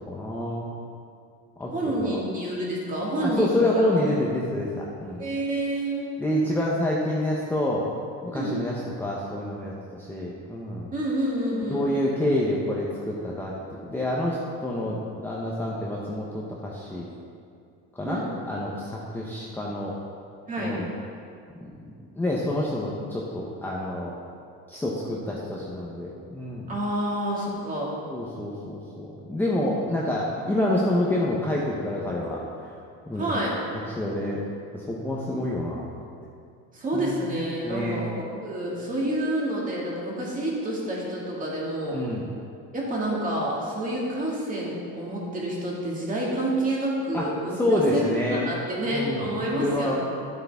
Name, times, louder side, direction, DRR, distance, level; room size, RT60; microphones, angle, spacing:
voice 1, 0.1-0.7 1.6-2.2 3.2-5.2 6.2-7.8 8.2-10.9 11.7-17.1 18.0-19.9 20.6-20.9 21.6-21.7 22.1-24.1 24.7-26.7 28.1-32.4 33.1-33.4 34.0-34.4 34.7-36.0 36.9-37.3 37.6-38.0 41.9-42.3 47.1-47.3 47.6-48.5 48.9-49.3 49.5-50.0, left 1 dB, 5° left, -5 dB, 0.7 m, -27 dB
voice 2, 1.7-3.9 5.2-6.1 8.3-8.6 10.9-11.9 18.0-18.3 20.5-20.8 26.7-27.9 33.1-33.6 36.7-38.1 38.4-42.0 42.7-50.0, right 1 dB, 25° right, -4 dB, 2.1 m, -28 dB
10.5 x 7.9 x 3.5 m, 2.4 s
cardioid pair, 145°, 32 cm